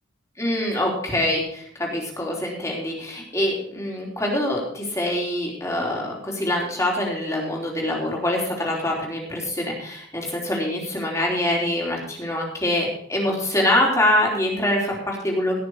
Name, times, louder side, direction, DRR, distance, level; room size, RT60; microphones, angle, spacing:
voice 1, 0.4-15.6, left 1 dB, 15° left, -2 dB, 3.4 m, -24 dB
18.0 x 6.6 x 4.9 m, 0.66 s
head